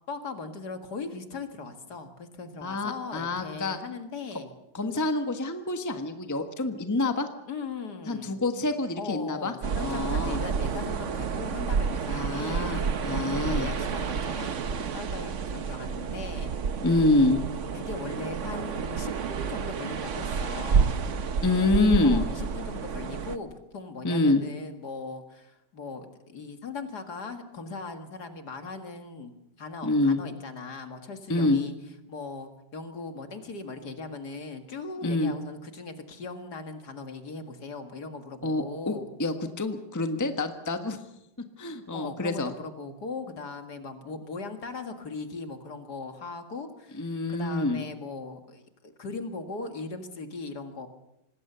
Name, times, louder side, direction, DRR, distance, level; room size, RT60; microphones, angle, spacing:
voice 1, 0.1-4.5 7.5-8.4 9.0-16.8 17.7-21.0 22.0-29.3 29.6-31.7 32.1-39.1 41.9-50.9, left 4 dB, 55° left, 6 dB, 2.3 m, -39 dB
voice 2, 2.6-3.8 4.7-7.3 8.1-9.5 9.8-10.4 12.1-13.7 16.8-17.4 21.4-22.3 24.0-24.4 29.8-30.2 31.3-31.6 35.0-35.3 38.4-41.0 41.6-42.5 47.0-47.8, left 2 dB, 10° left, 7 dB, 1.2 m, -26 dB
sound 1, 9.6-23.4, right 6 dB, 50° right, 1.1 m, -30 dB
25.5 x 20.0 x 6.9 m, 0.89 s
omnidirectional pair, 2.1 m